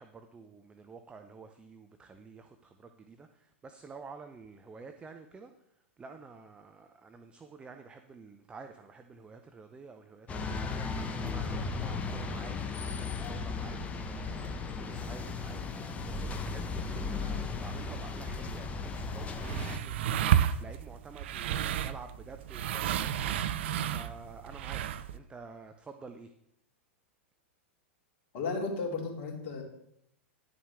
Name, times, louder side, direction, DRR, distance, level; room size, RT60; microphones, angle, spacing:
voice 1, 0.0-5.5 6.0-12.6 13.0-24.8 25.1-26.3, right 4 dB, 15° right, 7 dB, 0.6 m, -50 dB
sound 1, 10.3-19.8, left 4 dB, 20° left, 0.9 m, -36 dB
sound 2, 18.9-25.2, right 10 dB, 60° right, 0.5 m, -32 dB
voice 2, 28.3-29.6, left 4 dB, 50° left, 0 dB, 2.5 m, -34 dB
10.5 x 7.2 x 3.5 m, 0.77 s
figure-of-eight pair, 100°, 7 cm